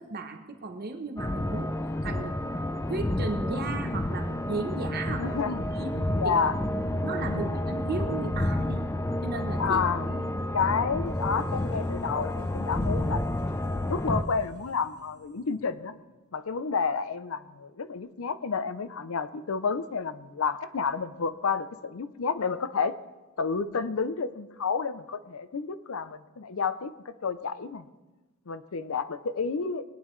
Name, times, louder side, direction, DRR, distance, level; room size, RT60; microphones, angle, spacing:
voice 1, 0.0-1.7 2.0-2.4 2.9-5.4 5.7-6.0 6.2-6.4 7.0-8.9 9.2-9.8 10.1-10.3, right 3 dB, 45° right, 5 dB, 0.8 m, -35 dB
sound 1, 1.2-14.2, left 1 dB, 15° left, 0.4 m, -30 dB
voice 2, 5.2-5.7 6.1-6.6 7.2-7.6 9.6-10.1 10.5-13.2 13.9-15.9 16.3-22.9 23.4-27.9 28.5-29.8, left 5 dB, 65° left, 13 dB, 0.5 m, -30 dB
sound 2, 11.1-16.4, left 1 dB, 85° left, 3.8 m, -51 dB
20.0 x 9.5 x 3.2 m, 1.2 s
head